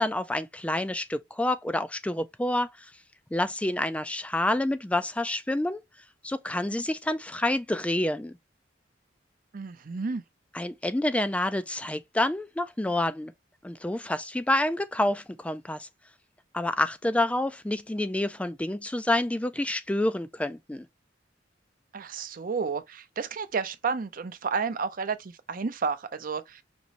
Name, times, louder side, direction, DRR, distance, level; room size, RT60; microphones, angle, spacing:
voice 1, 0.0-2.9 3.3-5.8 6.2-8.3 10.5-13.3 13.6-15.9 16.5-20.9, left 1 dB, 5° left, 0.3 m, -28 dB
voice 2, 9.5-10.2 21.9-26.6, right 5 dB, 50° right, 0.6 m, -31 dB
5.2 x 3.0 x 2.8 m
head